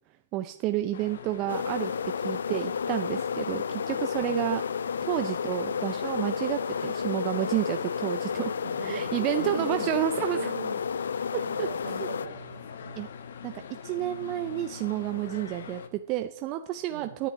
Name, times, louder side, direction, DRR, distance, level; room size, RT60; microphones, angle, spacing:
voice 1, 0.3-4.6 5.0-8.5 8.8-10.4 11.6-11.7 13.0-13.1 13.4-13.5 13.8-17.3, right 14 dB, 30° right, 8 dB, 0.6 m, -30 dB
voice 2, 0.8-1.6 4.2-4.5 8.6-10.0 10.3-10.8 11.0-13.1 16.9-17.1, right 7 dB, 65° right, 4 dB, 3.1 m, -41 dB
sound 1, 0.9-15.9, left 7 dB, 70° left, 1.3 m, -43 dB
sound 2, 1.5-12.3, left 6 dB, 85° left, 0.4 m, -31 dB
10.0 x 7.4 x 9.4 m, 0.80 s
hypercardioid pair, 150°, 0 cm